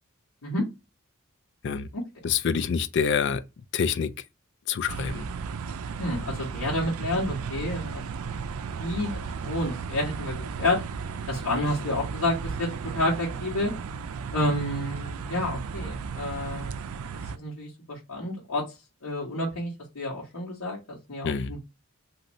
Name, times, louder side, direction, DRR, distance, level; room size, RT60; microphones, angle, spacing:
voice 1, 2.2-3.4 3.7-4.1 4.7-5.3 21.2-21.5, left 6 dB, 55° left, 0.3 m, -26 dB
sound 1, 4.9-17.4, right 5 dB, 80° right, 0.4 m, -35 dB
voice 2, 6.0-8.0 8.7-10.8 11.3-13.7 14.3-16.9 17.3-18.6 19.0-21.6, left 1 dB, 90° left, 1.3 m, -30 dB
2.7 x 2.6 x 3.0 m
head